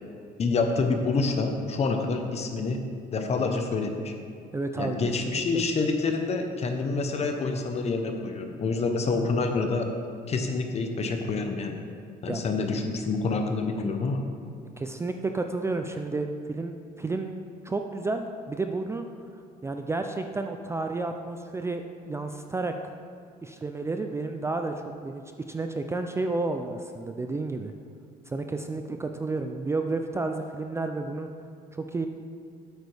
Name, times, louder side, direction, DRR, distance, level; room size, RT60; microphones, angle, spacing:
voice 1, 0.4-2.8 3.1-4.1 4.8-9.9 10.3-11.8 12.2-14.2, left 3 dB, 40° left, 5 dB, 0.9 m, -27 dB
voice 2, 4.5-5.6 12.3-12.4 14.8-17.4 17.6-19.1 19.6-22.9 23.4-24.7 25.0-25.2 25.5-27.7 28.3-31.3 31.7-32.1, right 3 dB, 15° right, 5 dB, 0.4 m, -31 dB
8.2 x 8.1 x 3.4 m, 2.2 s
cardioid pair, 110°, 17 cm